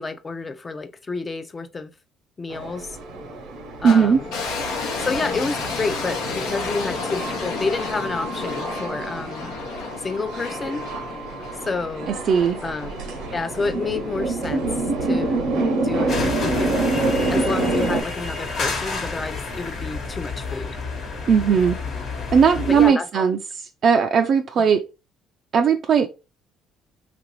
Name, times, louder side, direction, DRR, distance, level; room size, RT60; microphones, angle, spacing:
voice 1, 0.0-1.9 2.4-3.0 3.8-4.3 5.0-9.5 10.0-10.8 11.6-12.1 12.6-13.0 13.3-14.7 15.0-16.7 17.3-20.7 22.6-23.3, left 3 dB, 25° left, 0.5 m, -29 dB
sound 1, 2.5-18.0, right 2 dB, 85° right, 0.8 m, -28 dB
voice 2, 3.8-4.2 12.3-12.6 21.3-21.8 22.3-23.4 23.8-24.8 25.5-26.1, right 6 dB, 55° right, 0.3 m, -17 dB
sound 2, 3.9-15.1, left 4 dB, 90° left, 0.8 m, -32 dB
sound 3, 16.1-22.9, left 4 dB, 60° left, 1.1 m, -30 dB
2.9 x 2.5 x 3.0 m
cardioid pair, 90°, 0 cm